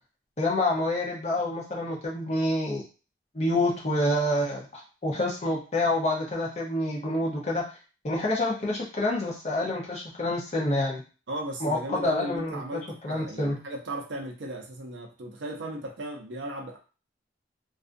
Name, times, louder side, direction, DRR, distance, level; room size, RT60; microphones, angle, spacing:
voice 1, 0.4-2.8 3.3-7.6 8.0-11.0 11.6-12.6 13.0-13.6, left 1 dB, 35° left, -3 dB, 0.7 m, -27 dB
voice 2, 11.3-16.8, right 1 dB, 75° right, 2 dB, 0.6 m, -36 dB
2.6 x 2.3 x 2.5 m, 0.35 s
head